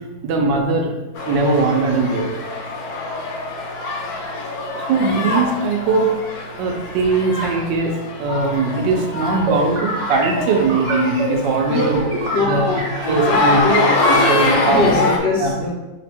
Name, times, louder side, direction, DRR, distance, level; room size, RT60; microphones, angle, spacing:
voice 1, 0.2-0.9 1.3-2.4 4.7-6.1 6.6-7.9 8.2-12.0 12.4-12.7 13.1-15.0 15.4-15.6, right 3 dB, 85° right, 2 dB, 1.3 m, -20 dB
sound 1, 1.2-15.2, left 3 dB, 70° left, 1.0 m, -24 dB
sound 2, 9.2-13.6 13.9-15.2, right 2 dB, 60° right, 1.1 m, -27 dB
voice 2, 12.2-13.7 14.6-15.7, left 3 dB, 55° left, -8 dB, 0.6 m, -23 dB
3.2 x 2.1 x 4.3 m, 1.0 s
omnidirectional pair, 1.9 m